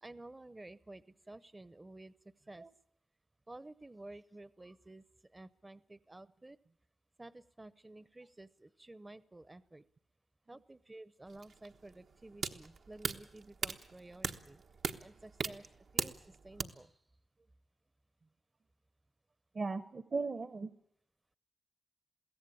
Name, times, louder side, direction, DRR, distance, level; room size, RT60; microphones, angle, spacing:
voice 1, 0.0-2.1 2.5-2.7 3.5-5.0 5.3-6.6 7.2-9.8 10.5-14.6 15.0-15.6 15.9-16.2 16.4-16.9, right 2 dB, 25° right, 17 dB, 0.8 m, -52 dB
sound 1, 11.3-16.6, right 5 dB, 75° right, 1.2 m, -39 dB
voice 2, 19.5-20.7, right 4 dB, 50° right, 14 dB, 1.0 m, -37 dB
22.5 x 16.0 x 8.5 m, 0.74 s
cardioid pair, 55°, 0 cm